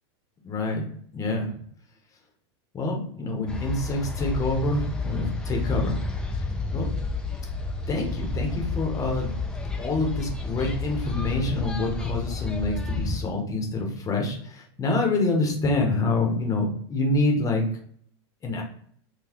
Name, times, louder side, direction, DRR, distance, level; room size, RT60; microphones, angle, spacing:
voice 1, 0.4-0.9 1.1-1.6 2.7-6.0 6.3-6.5 6.7-6.9 7.9-9.4 9.8-17.6 18.4-18.6, left 2 dB, 25° left, 1 dB, 0.9 m, -26 dB
sound 1, 3.5-13.2, left 3 dB, 5° left, 0.5 m, -30 dB
3.9 x 2.3 x 2.9 m, 0.62 s
supercardioid pair, 130°, 14 cm